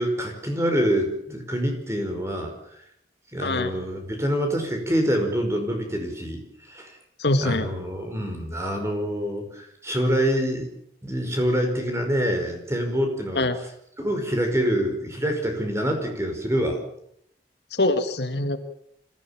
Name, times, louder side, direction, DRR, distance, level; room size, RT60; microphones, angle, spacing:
voice 1, 0.0-2.8 3.3-6.4 6.7-7.0 7.4-10.7 11.0-13.5 14.0-16.8, equal, 15° right, 4 dB, 5.2 m, -26 dB
voice 2, 3.4-3.7 7.2-7.7 13.3-13.6 17.7-18.6, left 2 dB, 70° left, 8 dB, 2.0 m, -23 dB
26.0 x 16.0 x 7.3 m, 0.71 s
head